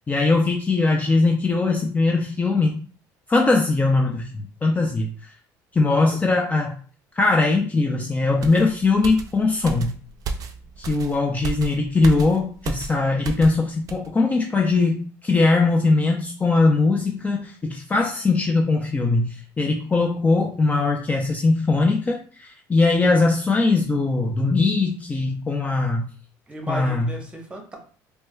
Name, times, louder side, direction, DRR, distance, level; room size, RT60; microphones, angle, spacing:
voice 1, 0.1-2.8 3.3-5.3 5.7-6.7 7.2-9.9 10.8-26.1 26.7-27.1, left 3 dB, 20° left, 1 dB, 0.4 m, -21 dB
voice 2, 5.8-6.3 26.5-27.8, right 1 dB, 15° right, 1 dB, 0.9 m, -35 dB
sound 1, 8.4-13.6 13.9-14.1, right 4 dB, 45° right, 0.4 m, -33 dB
4.4 x 2.1 x 2.2 m, 0.42 s
cardioid pair, 115°, 8 cm